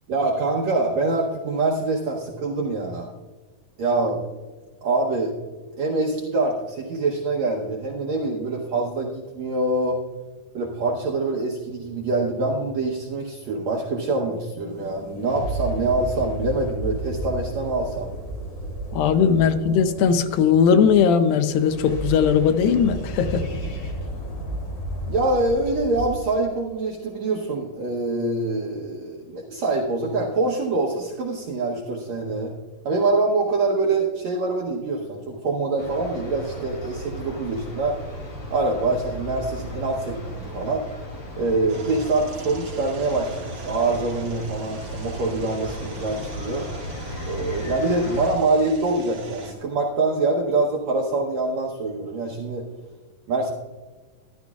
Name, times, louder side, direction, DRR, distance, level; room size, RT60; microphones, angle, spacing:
voice 1, 0.1-3.1 3.8-4.2 4.8-5.3 5.8-10.0 10.5-18.1 19.0-19.1 25.1-32.5 32.8-38.0 38.5-40.8 41.4-46.7 47.3-52.7 53.3-53.5, right 2 dB, 75° right, -1 dB, 1.6 m, -25 dB
sound 1, 14.7-26.2, right 1 dB, 55° left, 3.1 m, -33 dB
voice 2, 18.9-23.5, left 7 dB, 80° left, 9 dB, 2.3 m, -19 dB
sound 2, 35.8-48.3, equal, 35° left, 2.7 m, -35 dB
sound 3, 41.7-49.5, right 2 dB, 45° right, 2.8 m, -42 dB
14.0 x 11.5 x 2.3 m, 1.3 s
omnidirectional pair, 4.3 m